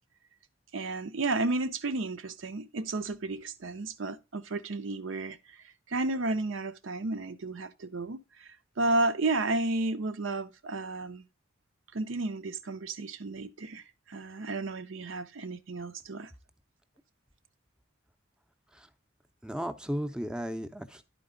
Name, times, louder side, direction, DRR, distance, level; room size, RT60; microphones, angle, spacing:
voice 1, 0.7-5.4 5.9-8.5 8.8-11.2 11.9-16.3, right 2 dB, 80° right, 0.7 m, -32 dB
voice 2, 19.4-21.0, equal, 5° right, 0.6 m, -35 dB
11.5 x 4.5 x 3.7 m
head